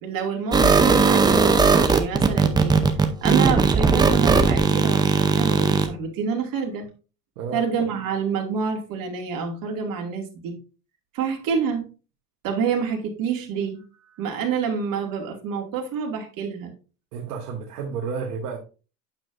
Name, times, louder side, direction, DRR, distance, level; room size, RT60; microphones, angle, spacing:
voice 1, 0.0-2.8 3.2-6.8 7.5-10.6 11.1-11.9 12.4-13.8 14.2-16.7, right 6 dB, 45° right, 2.2 m, -27 dB
sound 1, 0.5-5.9, right 4 dB, 10° right, 0.5 m, -18 dB
voice 2, 17.1-18.6, right 5 dB, 70° right, 1.5 m, -31 dB
8.9 x 6.4 x 2.5 m
hypercardioid pair, 105°, 49 cm